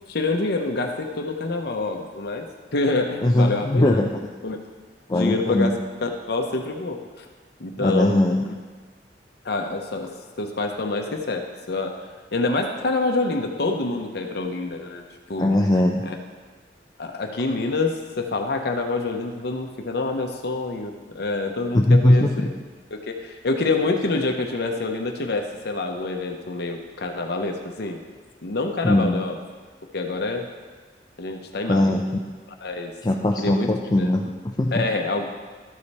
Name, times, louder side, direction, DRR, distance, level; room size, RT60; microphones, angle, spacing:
voice 1, 0.1-2.5 2.7-4.1 4.4-4.6 5.1-7.2 7.6-8.5 9.4-10.1 10.4-12.0 12.3-15.0 15.3-15.6 16.1-16.2 17.0-22.5 22.9-28.0 28.4-29.4 29.9-30.5 31.2-32.0 32.6-32.9 33.4-33.7 34.0-34.1 34.7-35.3, left 3 dB, 60° left, 3 dB, 0.8 m, -27 dB
voice 2, 3.2-4.1 5.1-5.7 7.8-8.4 15.4-16.0 21.7-22.5 28.8-29.2 31.7-32.0 33.0-34.8, left 1 dB, 20° left, 0 dB, 0.5 m, -20 dB
13.0 x 5.0 x 4.2 m, 1.4 s
head